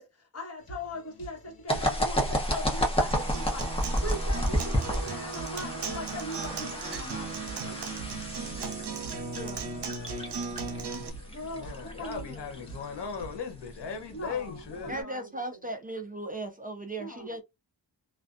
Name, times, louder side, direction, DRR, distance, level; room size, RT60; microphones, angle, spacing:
voice 1, 0.0-7.8 11.3-12.5 14.1-15.7 17.0-17.4, left 1 dB, 35° left, 1.2 m, -40 dB
sound 1, 0.6-13.4, right 4 dB, 60° left, 1.4 m, -48 dB
sound 2, 1.7-15.0, equal, 15° left, 0.6 m, -32 dB
Acoustic guitar, 3.1-11.1, right 4 dB, 75° right, 0.7 m, -37 dB
voice 2, 9.3-9.6 14.9-17.4, right 2 dB, 25° right, 0.3 m, -37 dB
voice 3, 11.5-15.1, left 6 dB, 85° left, 0.8 m, -38 dB
2.5 x 2.2 x 2.4 m
wide cardioid pair, 140°, 41 cm